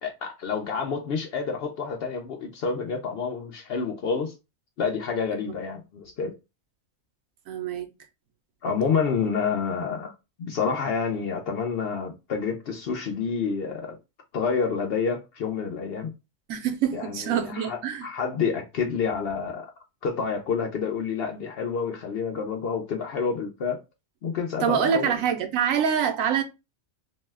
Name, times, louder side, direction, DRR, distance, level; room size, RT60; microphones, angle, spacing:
voice 1, 0.0-4.3 4.8-6.3 8.6-10.1 10.4-14.0 14.3-16.1 16.9-19.7 20.0-23.8 24.2-25.1, left 5 dB, 65° left, 0.6 m, -28 dB
voice 2, 7.5-7.9 16.5-18.1 24.6-26.4, right 8 dB, 90° right, 1.1 m, -25 dB
2.7 x 2.2 x 3.2 m
omnidirectional pair, 1.4 m